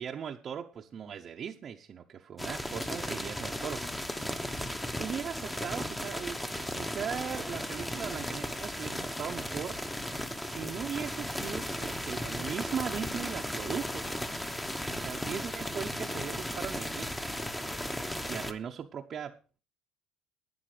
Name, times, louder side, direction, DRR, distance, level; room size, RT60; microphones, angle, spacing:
voice 1, 0.0-3.8 5.0-9.8 10.4-14.0 15.0-17.1 18.3-19.4, right 8 dB, 35° right, 0.8 m, -38 dB
sound 1, 2.4-18.5, left 1 dB, 5° left, 0.9 m, -36 dB
12.0 x 9.7 x 4.9 m
cardioid pair, 160°, 0 cm